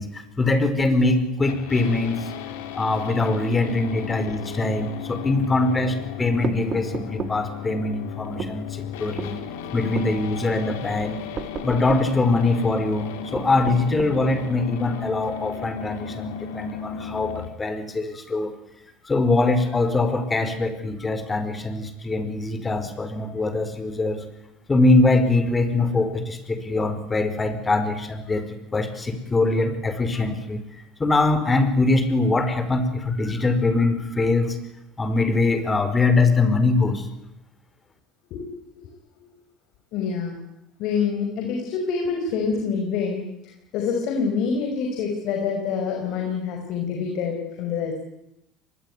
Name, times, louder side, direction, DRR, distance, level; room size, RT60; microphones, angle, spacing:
voice 1, 0.0-2.3 2.7-9.4 9.7-11.2 11.6-18.5 19.0-24.2 24.7-34.6 35.0-37.1, left 2 dB, 20° left, 10 dB, 4.8 m, -23 dB
sound 1, 1.5-17.5, left 8 dB, 85° left, 3.8 m, -35 dB
sound 2, 6.4-7.4 8.4-8.6 9.2-9.4 9.9-10.1 11.3-12.1 13.3-14.2, right 7 dB, 35° right, 1.8 m, -32 dB
voice 2, 39.9-40.4 40.8-43.2 43.7-48.0, left 5 dB, 65° left, 2 dB, 5.5 m, -26 dB
25.5 x 21.0 x 9.8 m, 0.84 s
supercardioid pair, 105°, 0 cm